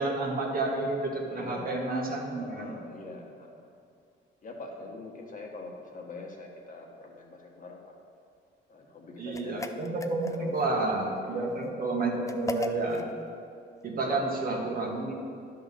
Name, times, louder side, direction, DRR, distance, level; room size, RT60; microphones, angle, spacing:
voice 1, 0.0-2.7 9.2-13.1 13.8-15.1, right 2 dB, 45° right, -1 dB, 1.7 m, -30 dB
voice 2, 1.3-1.8 2.4-3.5 4.4-8.0 8.7-9.6 10.3-10.8 11.2-11.7 14.0-14.2, left 3 dB, 40° left, 0 dB, 1.5 m, -43 dB
sound 1, 9.3-10.7 12.3-13.1, left 3 dB, 15° left, 0.5 m, -37 dB
10.5 x 3.9 x 6.9 m, 2.4 s
cardioid pair, 90°, 20 cm